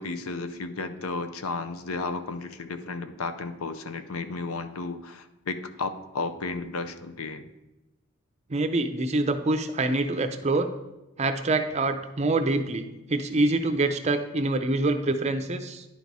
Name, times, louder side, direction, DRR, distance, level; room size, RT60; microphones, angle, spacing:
voice 1, 0.0-7.4, left 3 dB, 80° left, 10 dB, 0.6 m, -33 dB
voice 2, 8.5-10.7 11.2-15.8, right 2 dB, 30° right, 7 dB, 0.5 m, -25 dB
10.5 x 4.0 x 4.6 m, 1.0 s
head